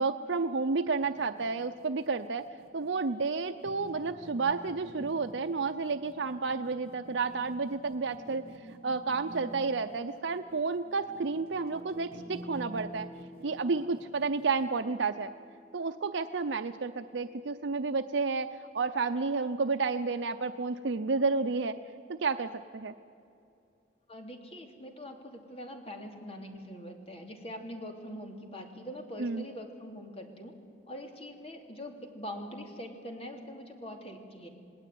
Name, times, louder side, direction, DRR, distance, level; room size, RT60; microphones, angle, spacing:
voice 1, 0.0-2.4 2.7-8.4 8.8-13.1 13.4-15.3 15.7-18.5 18.7-21.7 22.2-22.9 29.2-29.4, right 4 dB, 85° right, 8 dB, 0.7 m, -31 dB
sound 1, 1.0-14.8, right 1 dB, 55° right, 1.6 m, -50 dB
Piano, 11.1-18.3, left 1 dB, 15° left, 5.8 m, -52 dB
voice 2, 24.1-30.5 30.9-34.5, equal, 35° left, 4 dB, 3.0 m, -43 dB
28.0 x 19.0 x 9.3 m, 2.6 s
head